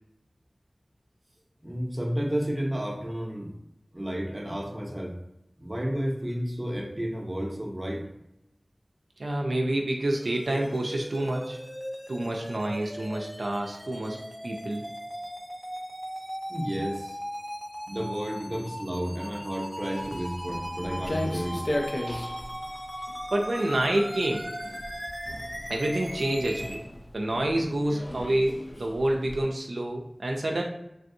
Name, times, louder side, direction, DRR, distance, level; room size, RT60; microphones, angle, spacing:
voice 1, 1.6-3.5 3.9-5.2 5.6-8.1 16.5-17.2 17.9-21.6, equal, 30° right, 1 dB, 0.6 m, -31 dB
voice 2, 9.2-11.6 12.1-14.2 14.4-14.8 23.3-24.5 25.7-26.8 27.1-30.6, right 1 dB, 90° right, 0 dB, 0.3 m, -28 dB
sound 1, 10.1-26.7, equal, 15° left, 0.7 m, -38 dB
Walk footsteps, 20.0-29.4, left 1 dB, 60° left, 0.4 m, -37 dB
3.3 x 2.6 x 2.6 m, 0.84 s
wide cardioid pair, 40°, 0 cm